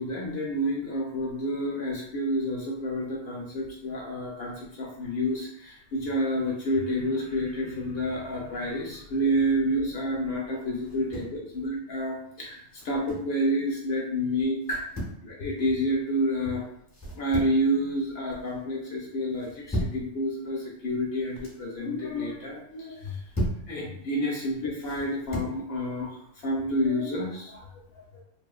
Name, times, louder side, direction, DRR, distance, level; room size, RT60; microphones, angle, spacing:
voice 1, 0.0-14.8 15.2-16.6 17.1-23.2 23.7-28.2, equal, 65° left, -2 dB, 0.7 m, -29 dB
sound 1, 10.8-11.4 12.7-13.3 14.6-15.2 16.9-17.7 18.0-18.5 19.4-20.0 21.1-21.6 22.9-23.7 24.8-25.6, equal, 20° left, 0.5 m, -35 dB
2.9 x 2.1 x 2.3 m, 0.70 s
omnidirectional pair, 1.3 m